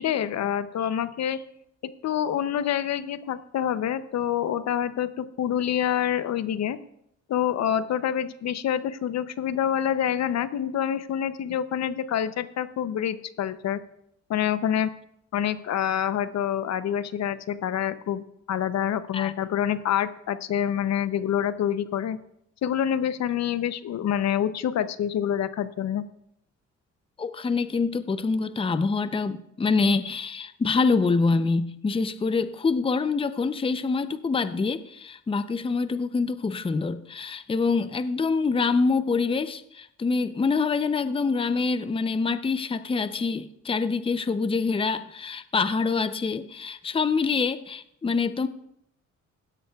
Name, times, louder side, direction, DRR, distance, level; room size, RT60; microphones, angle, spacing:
voice 1, 0.0-1.4 1.8-6.8 7.3-13.8 14.3-14.9 15.3-22.2 22.6-26.0, left 9 dB, 60° left, 13 dB, 0.7 m, -27 dB
voice 2, 27.2-48.5, left 4 dB, 20° left, 12 dB, 0.6 m, -25 dB
16.5 x 12.5 x 2.4 m, 0.75 s
cardioid pair, 90°, 30 cm